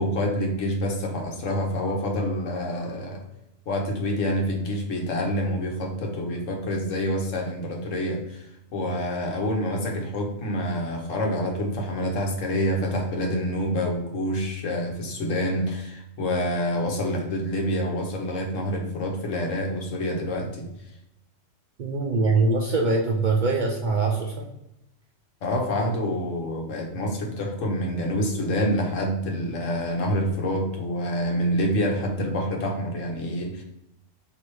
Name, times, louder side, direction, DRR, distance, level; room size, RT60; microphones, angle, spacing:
voice 1, 0.0-3.2 3.7-20.7 25.4-33.6, equal, 85° left, 2 dB, 1.2 m, -27 dB
voice 2, 21.8-24.5, right 3 dB, 60° right, 0 dB, 0.5 m, -23 dB
3.1 x 2.9 x 4.5 m, 0.86 s
omnidirectional pair, 1.3 m